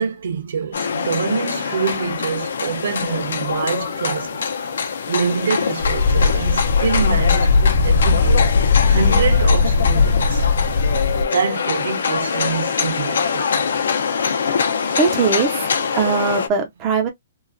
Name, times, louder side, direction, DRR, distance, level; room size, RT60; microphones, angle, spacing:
voice 1, 0.0-4.5 4.7-8.5 8.8-10.5 11.3-13.6, right 6 dB, 80° right, 1.1 m, -25 dB
sound 1, 0.7-16.5, left 6 dB, 90° left, 0.6 m, -24 dB
sound 2, 5.8-11.2, left 4 dB, 45° left, 0.3 m, -17 dB
voice 2, 15.0-17.1, right 5 dB, 20° right, 0.4 m, -20 dB
3.0 x 2.3 x 2.5 m
hypercardioid pair, 175°, 0 cm